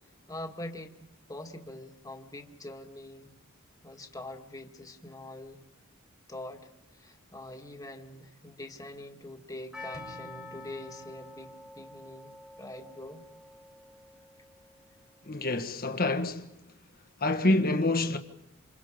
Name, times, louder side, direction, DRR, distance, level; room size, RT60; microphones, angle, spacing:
voice 1, 0.3-1.0 1.3-3.3 3.8-5.6 6.3-13.2, left 1 dB, 15° left, 2.1 m, -44 dB
Percussion, 9.7-14.7, left 2 dB, 5° right, 1.6 m, -47 dB
sound 1, 9.9-11.9, right 2 dB, 90° right, 7.0 m, -52 dB
voice 2, 15.2-16.5 17.2-18.2, left 2 dB, 45° left, 1.6 m, -27 dB
28.0 x 27.0 x 5.2 m
head